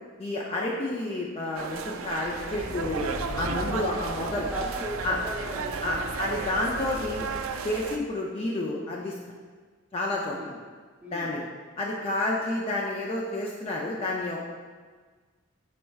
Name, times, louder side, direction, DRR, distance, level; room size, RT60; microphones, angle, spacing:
voice 1, 0.2-3.0 3.4-4.5 5.0-5.2 5.8-7.3 7.6-9.2 9.9-10.4 11.1-11.4 11.8-14.4, left 2 dB, 30° left, -3 dB, 0.3 m, -30 dB
sound 1, 1.5-8.0, right 5 dB, 80° right, 0.3 m, -34 dB
sound 2, 2.2-7.9, equal, 90° left, 0.6 m, -40 dB
voice 2, 3.7-4.0 4.5-6.2 10.2-10.6 11.0-11.4, right 1 dB, 10° right, -5 dB, 0.7 m, -37 dB
4.4 x 4.2 x 2.3 m, 1.5 s
head